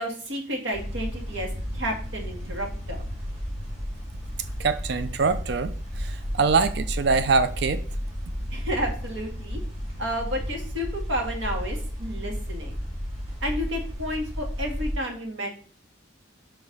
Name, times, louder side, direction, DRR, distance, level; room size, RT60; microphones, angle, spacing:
voice 1, 0.0-3.0 8.5-9.6 10.0-12.7 13.4-15.5, equal, 75° right, 2.0 m, -31 dB
sound 1, 0.7-14.9, equal, 35° right, 2.7 m, -33 dB
voice 2, 4.6-7.8, right 4 dB, 55° right, 0.4 m, -24 dB
5.7 x 4.9 x 5.4 m
head